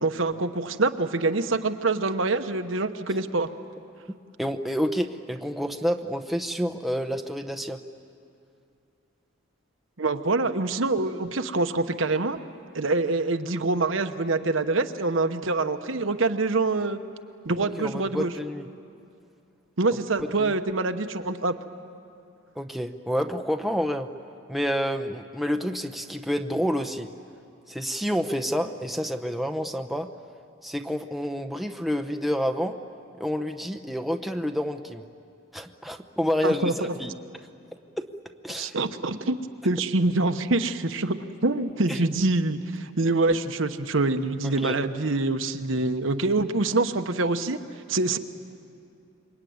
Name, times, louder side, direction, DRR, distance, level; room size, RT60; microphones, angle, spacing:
voice 1, 0.0-3.5 10.0-12.4 12.7-17.0 17.4-18.3 19.8-21.5 36.4-37.0 38.5-39.4 39.6-47.6 47.9-48.2, right 3 dB, 70° right, 8 dB, 1.1 m, -25 dB
voice 2, 4.4-7.8 17.6-18.7 20.4-20.5 22.6-24.1 24.5-27.1 27.7-30.1 30.6-32.8 33.1-35.0 35.5-36.6 37.0-37.1 38.0-38.1 38.4-38.8 41.9-42.0 44.6-44.8, equal, ahead, 5 dB, 0.8 m, -28 dB
27.0 x 23.0 x 9.5 m, 2.5 s
head